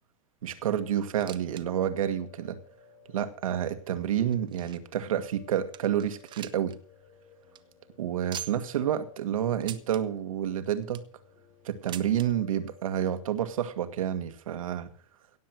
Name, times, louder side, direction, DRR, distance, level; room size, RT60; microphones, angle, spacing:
voice 1, 0.4-2.6 3.1-6.8 8.0-11.0 11.6-14.9, right 10 dB, 85° right, 1.7 m, -29 dB
Piano, 0.6-14.3, left 7 dB, 75° left, 5.1 m, -57 dB
sound 1, 1.2-1.6 1.9-2.0 2.7-2.8 3.5-5.0 5.4-5.5 5.7-6.8 7.1-7.2 7.4-7.6 8.3-8.8 9.6-10.0 10.6-11.2 11.9-12.3 13.2-13.3 13.5-13.6 14.4-14.5, right 11 dB, 25° right, 1.0 m, -43 dB
17.0 x 7.7 x 6.2 m
hypercardioid pair, 125°, 17 cm